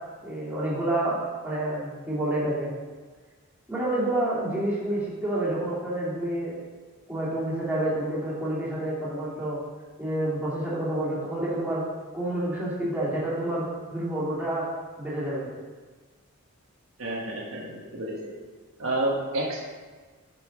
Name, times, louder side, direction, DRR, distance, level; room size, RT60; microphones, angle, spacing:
voice 1, 0.2-1.2 1.4-2.7 3.7-6.6 7.1-9.6 10.0-11.8 12.1-14.6 15.0-15.5, right 1 dB, 10° right, -8 dB, 2.2 m, -28 dB
voice 2, 17.0-18.3 18.8-19.6, right 1 dB, 65° right, -3 dB, 1.2 m, -29 dB
6.9 x 5.5 x 5.1 m, 1.4 s
head